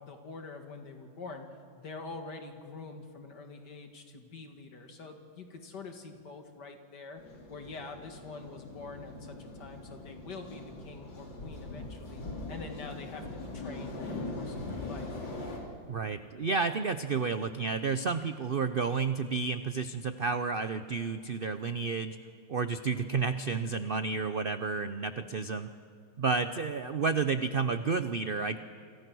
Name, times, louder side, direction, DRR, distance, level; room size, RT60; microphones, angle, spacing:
voice 1, 0.0-1.5 1.8-7.2 7.5-12.2 12.5-15.2, left 3 dB, 60° left, 5 dB, 2.7 m, -45 dB
sound 1, 7.2-15.6, left 2 dB, 80° left, 4.0 m, -41 dB
voice 2, 15.9-22.2 22.5-25.7 26.2-28.6, right 4 dB, 80° right, 10 dB, 0.5 m, -31 dB
27.5 x 26.0 x 6.2 m, 2.2 s
omnidirectional pair, 2.0 m